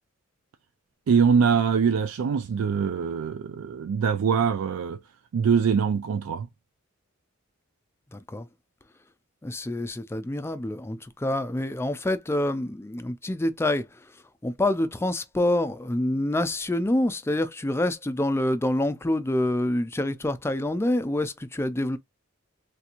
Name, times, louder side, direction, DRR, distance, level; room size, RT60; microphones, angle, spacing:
voice 1, 1.1-5.0 5.3-6.5, right 6 dB, 90° right, 0.4 m, -23 dB
voice 2, 8.1-8.5 9.4-14.0 14.4-22.0, left 1 dB, 10° left, 0.4 m, -26 dB
3.3 x 2.9 x 2.4 m
head